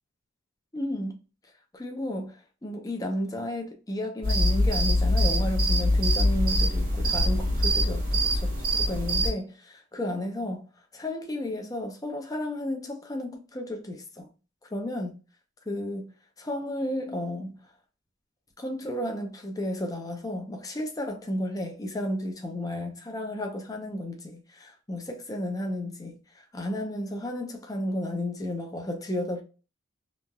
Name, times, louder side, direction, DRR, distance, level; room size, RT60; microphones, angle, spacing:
voice 1, 0.7-1.1 1.7-10.6 10.9-14.3 14.7-15.1 15.7-16.1 16.4-17.5 18.6-29.4, left 1 dB, 20° left, 0.6 m, -33 dB
sound 1, 4.2-9.3, equal, 45° right, 1.4 m, -24 dB
2.9 x 2.5 x 2.2 m
head